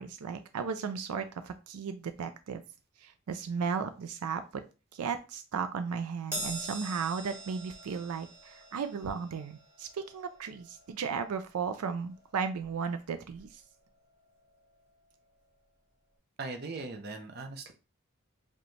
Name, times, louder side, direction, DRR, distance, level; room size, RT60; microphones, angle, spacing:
voice 1, 0.0-2.6 3.0-4.6 4.9-13.6, right 6 dB, 85° right, 9 dB, 0.4 m, -35 dB
Crash cymbal, 6.3-12.9 13.3-13.5 14.5-14.6, right 2 dB, 10° right, 1.2 m, -44 dB
voice 2, 16.4-17.7, right 3 dB, 45° right, 5 dB, 0.6 m, -39 dB
4.8 x 2.3 x 3.1 m, 0.31 s
head